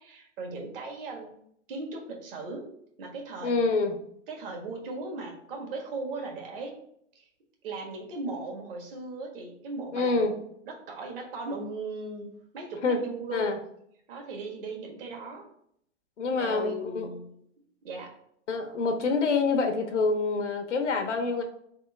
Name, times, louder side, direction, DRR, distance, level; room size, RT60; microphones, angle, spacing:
voice 1, 0.0-1.3 1.7-2.7 3.0-3.7 4.3-6.8 7.1-7.3 7.6-10.3 10.6-13.5 14.1-15.4 16.3-17.4 17.8-18.1, right 3 dB, 50° right, 1 dB, 1.4 m, -38 dB
voice 2, 3.4-3.9 9.9-10.3 12.8-13.0 13.3-13.6 16.2-17.1 18.5-21.4, left 4 dB, 80° left, 5 dB, 1.0 m, -26 dB
3.6 x 3.1 x 4.4 m, 0.70 s
hypercardioid pair, 135°, 36 cm